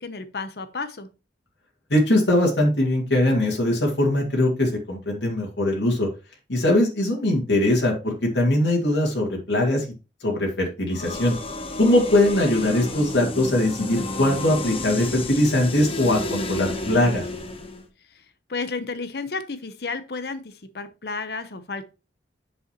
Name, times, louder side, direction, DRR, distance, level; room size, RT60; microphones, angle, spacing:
voice 1, 0.0-1.1 18.5-21.8, left 4 dB, 65° left, 11 dB, 0.8 m, -32 dB
voice 2, 1.9-6.1 6.5-9.9 10.2-11.3 11.8-17.3, left 1 dB, 90° left, 0 dB, 2.2 m, -21 dB
sound 1, 10.9-17.8, left 2 dB, 30° left, 1.0 m, -31 dB
8.0 x 6.4 x 3.0 m, 0.29 s
head